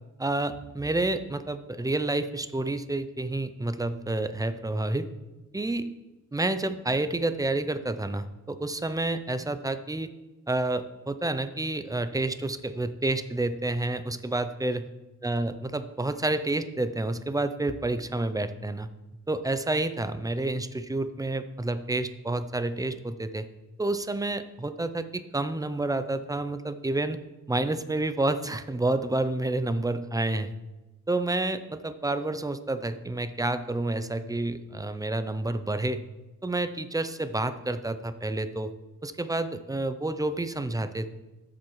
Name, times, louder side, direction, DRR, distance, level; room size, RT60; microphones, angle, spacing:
voice 1, 0.2-5.1 5.5-5.9 6.3-10.1 10.5-14.8 15.2-18.9 19.3-23.5 23.8-27.2 27.5-30.5 31.1-36.0 36.4-38.7 39.0-41.1, right 2 dB, 10° right, 11 dB, 0.6 m, -29 dB
13.0 x 7.7 x 4.7 m, 1.1 s
wide cardioid pair, 135°, 31 cm